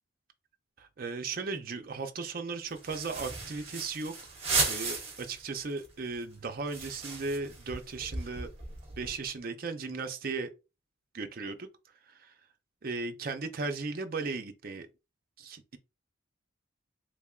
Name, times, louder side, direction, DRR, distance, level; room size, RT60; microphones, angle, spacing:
voice 1, 0.8-4.3 4.7-8.5 9.0-10.5 11.1-11.7 12.1-12.3 12.8-14.9 15.4-15.8, right 4 dB, 45° right, 0.5 m, -36 dB
sound 1, 2.7-5.4 5.8-5.9 6.1-9.3, right 3 dB, 30° right, 1.2 m, -35 dB
3.6 x 3.4 x 2.4 m
head